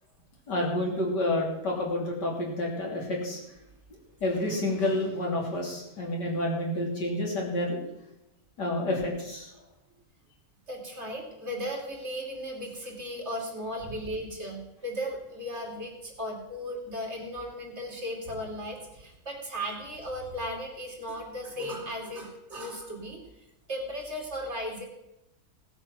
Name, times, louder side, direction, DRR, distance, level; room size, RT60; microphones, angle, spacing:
voice 1, 0.5-3.4 4.2-7.8 8.6-9.5, left 1 dB, 85° left, -1 dB, 3.6 m, -29 dB
voice 2, 10.7-23.2 23.7-24.8, equal, 40° right, 0 dB, 3.2 m, -36 dB
17.5 x 7.8 x 6.0 m, 0.89 s
omnidirectional pair, 1.8 m